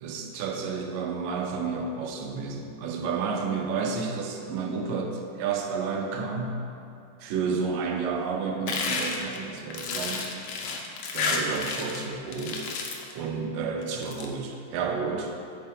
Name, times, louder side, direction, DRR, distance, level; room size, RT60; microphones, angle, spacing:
voice 1, 0.0-6.6 7.2-10.3 11.1-12.7 13.2-15.3, right 5 dB, 85° right, 2 dB, 2.4 m, -31 dB
sound 1, 8.7-12.1 12.3-13.1 13.8-14.3, left 4 dB, 80° left, 1.3 m, -31 dB
8.6 x 5.6 x 5.3 m, 2.7 s
omnidirectional pair, 3.8 m